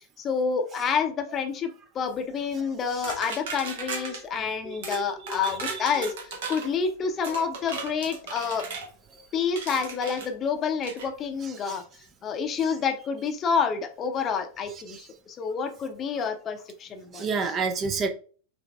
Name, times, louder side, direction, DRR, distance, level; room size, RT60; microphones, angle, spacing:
voice 1, 0.2-8.6 9.3-11.8 12.2-17.3, left 6 dB, 25° left, 0.6 m, -28 dB
sound 1, 3.0-4.2 4.8-5.0 5.3-6.7 7.2-8.9 9.6-10.3 10.8-11.1, right 4 dB, 60° right, 1.1 m, -36 dB
voice 2, 4.6-5.1 5.4-6.1 9.1-9.2 11.4-11.8 14.9-15.0 17.1-18.1, right 5 dB, 30° right, 0.6 m, -31 dB
5.8 x 3.4 x 2.3 m
figure-of-eight pair, 90°, 0 cm